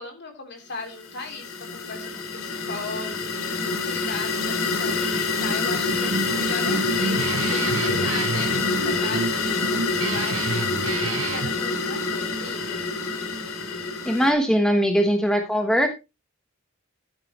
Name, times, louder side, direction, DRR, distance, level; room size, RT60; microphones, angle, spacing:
voice 1, 0.0-10.4 10.6-12.8, left 3 dB, 50° left, 4 dB, 3.3 m, -37 dB
sound 1, 0.9-14.3, left 3 dB, 80° left, 2.5 m, -26 dB
Guitar, 5.8-11.5, right 4 dB, 70° right, 0.7 m, -30 dB
voice 2, 14.0-15.9, equal, 5° left, 4 dB, 1.1 m, -20 dB
12.5 x 8.7 x 3.0 m, 0.25 s
head